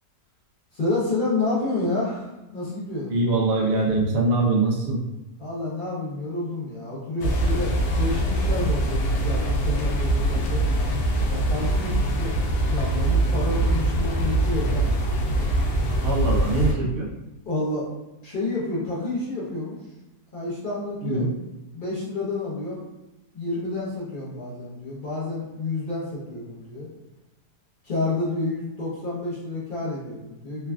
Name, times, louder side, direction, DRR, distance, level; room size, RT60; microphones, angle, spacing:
voice 1, 0.7-3.1 5.4-10.7 11.3-12.3 12.7-14.9 17.4-17.9 18.2-19.8 20.3-21.2 21.7-22.8 23.3-26.9 27.8-30.7, left 2 dB, 45° left, -7 dB, 0.7 m, -29 dB
voice 2, 3.1-5.0 16.0-17.1 21.0-21.3, right 3 dB, 75° right, -1 dB, 0.6 m, -23 dB
sound 1, 7.2-16.7, right 1 dB, 90° left, 1.2 m, -23 dB
3.2 x 2.3 x 2.2 m, 1.0 s
omnidirectional pair, 1.8 m